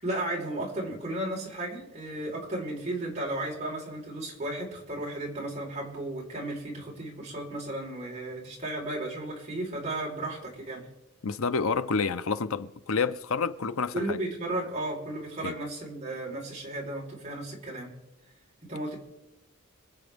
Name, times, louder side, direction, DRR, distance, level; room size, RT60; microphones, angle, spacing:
voice 1, 0.0-10.9 13.9-17.9 18.6-18.9, right 1 dB, 30° right, 4.3 m, -34 dB
voice 2, 11.2-14.2 15.4-15.5, left 5 dB, 75° left, 0.7 m, -29 dB
26.5 x 8.9 x 3.5 m
head